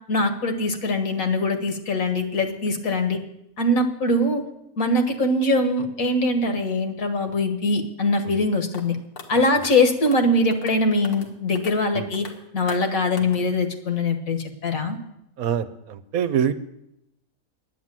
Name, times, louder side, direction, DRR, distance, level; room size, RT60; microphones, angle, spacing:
voice 1, 0.1-3.2 3.6-4.4 4.8-9.0 9.3-12.3 12.5-15.0, left 2 dB, 65° left, 5 dB, 1.8 m, -22 dB
sound 1, 8.7-8.8 9.2-9.3 9.6-9.7 10.1-10.2 10.5-10.7 11.0-11.3 11.6-11.7 12.1-12.3 12.7-12.8 13.2-13.4, left 4 dB, 85° left, 2.1 m, -39 dB
voice 2, 15.4-16.5, right 8 dB, 75° right, 12 dB, 1.2 m, -24 dB
10.5 x 9.6 x 7.5 m, 0.83 s
omnidirectional pair, 1.6 m